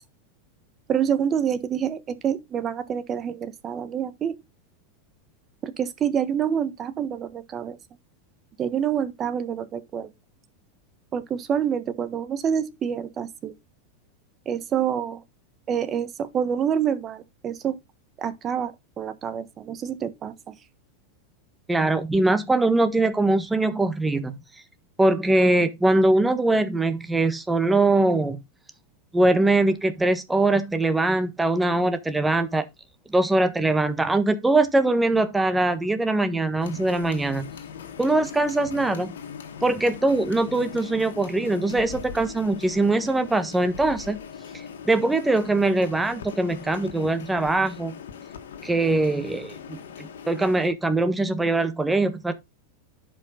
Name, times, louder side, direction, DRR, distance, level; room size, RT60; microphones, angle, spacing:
voice 1, 0.9-4.3 5.6-7.8 8.6-10.1 11.1-13.5 14.4-15.2 15.7-17.8 18.2-18.7 19.0-20.5, right 8 dB, 30° right, 1.4 m, -27 dB
voice 2, 21.7-24.4 25.0-28.4 29.1-32.6 33.1-37.5 38.0-39.1 39.6-44.2 44.5-47.9 48.6-52.3, right 2 dB, 10° right, 1.4 m, -22 dB
sound 1, 36.6-50.7, left 7 dB, 80° left, 1.8 m, -40 dB
11.0 x 5.4 x 3.9 m
hypercardioid pair, 105°, 0 cm